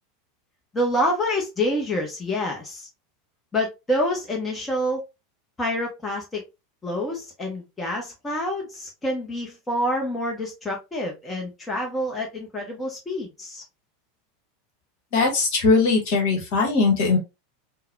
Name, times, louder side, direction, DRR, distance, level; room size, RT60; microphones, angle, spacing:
voice 1, 0.7-2.9 3.5-5.0 5.6-6.4 6.8-13.6, left 1 dB, 15° left, 0 dB, 0.9 m, -27 dB
voice 2, 15.1-17.2, left 4 dB, 50° left, 2 dB, 1.2 m, -20 dB
3.8 x 2.2 x 2.6 m, 0.24 s
figure-of-eight pair, 85°, 0 cm